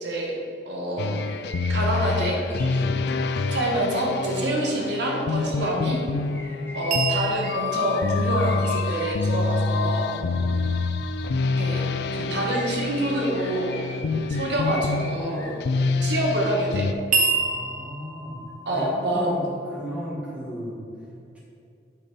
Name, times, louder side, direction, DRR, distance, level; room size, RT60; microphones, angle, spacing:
voice 1, 0.0-0.3 0.7-1.1 1.7-2.4 3.5-6.0 6.7-10.1 11.6-11.8 12.1-13.8 14.3-15.5 16.0-16.9 18.7-19.3, right 1 dB, 70° right, -1 dB, 1.3 m, -26 dB
sound 1, 1.0-16.9, left 3 dB, 65° left, 0.3 m, -27 dB
sound 2, 1.2-3.4 3.8-4.2 4.5-5.0 5.5-10.6 11.6-12.1 12.4-15.6 16.0-16.4, left 1 dB, 10° left, 0.9 m, -43 dB
sound 3, 6.9-10.9 17.1-19.9, right 4 dB, 40° right, 0.9 m, -30 dB
voice 2, 10.3-10.6 14.0-14.2 15.7-15.9 17.4-18.4 18.7-20.8 21.3-21.4, equal, 5° right, -6 dB, 1.5 m, -35 dB
8.2 x 5.3 x 4.1 m, 2.6 s
head